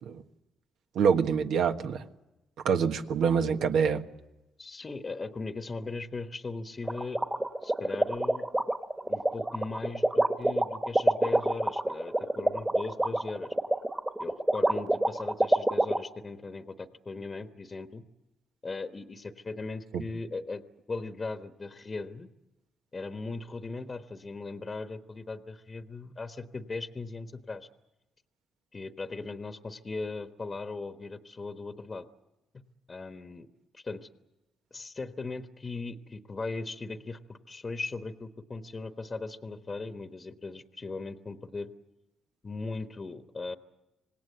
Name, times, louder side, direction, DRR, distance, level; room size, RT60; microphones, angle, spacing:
voice 1, 0.9-2.0 2.6-4.0 19.9-20.0, right 6 dB, 75° right, 6 dB, 1.4 m, -25 dB
voice 2, 4.6-7.2 7.6-8.5 9.1-13.5 14.2-18.0 18.6-20.6 20.9-22.3 22.9-27.7 28.7-32.1 32.9-33.5 33.7-34.1 34.7-41.7 42.4-43.6, left 3 dB, 30° left, 7 dB, 1.2 m, -38 dB
sound 1, 6.9-16.0, right 1 dB, 15° right, 1.5 m, -26 dB
26.5 x 19.5 x 8.0 m, 0.96 s
cardioid pair, 90°, 0 cm